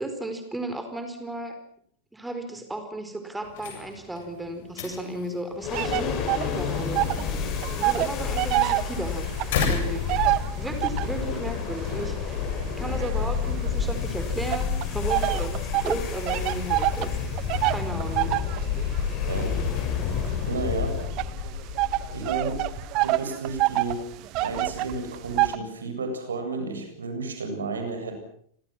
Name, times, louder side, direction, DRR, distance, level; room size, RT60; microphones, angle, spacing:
voice 1, 0.0-1.6 2.1-7.3 7.8-9.3 9.7-10.1 10.6-12.5 12.8-17.4 17.6-18.4, right 1 dB, 5° right, 7 dB, 4.8 m, -34 dB
sound 1, 3.4-10.9, left 6 dB, 55° left, 7.9 m, -36 dB
sound 2, 5.6-23.0, left 6 dB, 35° left, 5.6 m, -30 dB
sound 3, 5.7-7.3 7.6-11.2 11.8-13.9 14.5-25.6, right 18 dB, 40° right, 1.4 m, -27 dB
voice 2, 19.3-19.6 20.5-21.0 22.1-22.7 23.0-24.0 24.4-28.1, right 3 dB, 70° right, 6 dB, 7.8 m, -32 dB
29.5 x 25.5 x 6.1 m, 0.65 s
figure-of-eight pair, 90°, 0 cm